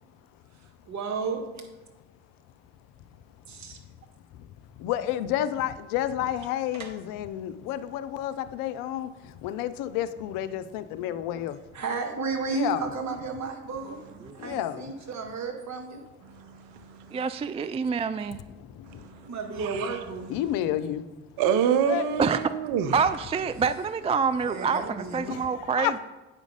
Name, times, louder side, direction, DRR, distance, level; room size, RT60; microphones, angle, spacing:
voice 1, 0.8-1.6 3.5-3.8 6.7-6.9 11.7-14.0 14.3-16.0 19.2-20.4 24.4-25.5, right 4 dB, 50° right, 1.7 m, -33 dB
voice 2, 4.8-11.6 12.5-12.8 14.4-14.9 18.6-19.0 20.3-21.0 21.9-22.0 25.3-25.4 25.8-25.9, left 12 dB, 70° left, 0.6 m, -30 dB
voice 3, 14.3-14.6 17.1-18.4 22.2-22.4 22.9-26.0, right 5 dB, 20° right, 0.3 m, -27 dB
voice 4, 16.3-17.2 18.9-19.3 19.6-19.9 21.4-23.0, right 8 dB, 70° right, 0.7 m, -27 dB
8.9 x 5.1 x 5.0 m
hypercardioid pair, 45°, 35 cm